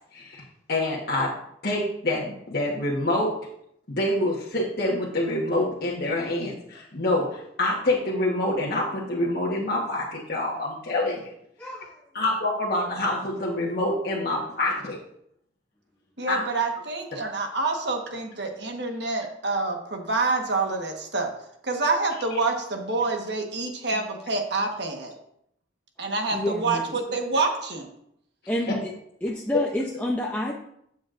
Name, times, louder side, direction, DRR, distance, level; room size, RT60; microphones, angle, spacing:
voice 1, 0.1-0.4 0.7-1.3 1.6-3.3 4.0-11.3 12.1-15.0 16.3-16.4 22.3-22.4, left 1 dB, 50° left, -4 dB, 1.3 m, -26 dB
voice 2, 11.6-12.0 26.3-26.8 28.5-28.9 29.2-30.5, left 1 dB, 10° left, -2 dB, 0.7 m, -28 dB
voice 3, 16.2-21.3 21.6-25.1 26.0-27.9, right 3 dB, 60° right, 3 dB, 1.4 m, -27 dB
12.5 x 7.2 x 2.6 m, 0.73 s
head